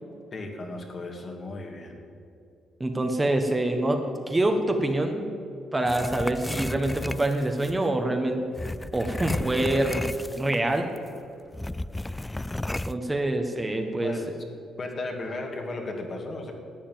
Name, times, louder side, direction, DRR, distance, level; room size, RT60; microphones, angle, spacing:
voice 1, 0.3-2.0 14.0-14.3 14.8-16.5, left 2 dB, 40° left, 2 dB, 2.3 m, -35 dB
voice 2, 2.8-5.3 5.7-8.4 8.9-10.1 10.3-10.9 12.9-14.1, right 1 dB, 20° right, 4 dB, 1.4 m, -25 dB
sound 1, 5.9-7.8 8.5-10.7 11.0-11.1 11.5-12.9, left 1 dB, 10° left, 0.3 m, -33 dB
12.0 x 8.6 x 9.3 m, 2.5 s
cardioid pair, 90°, 0 cm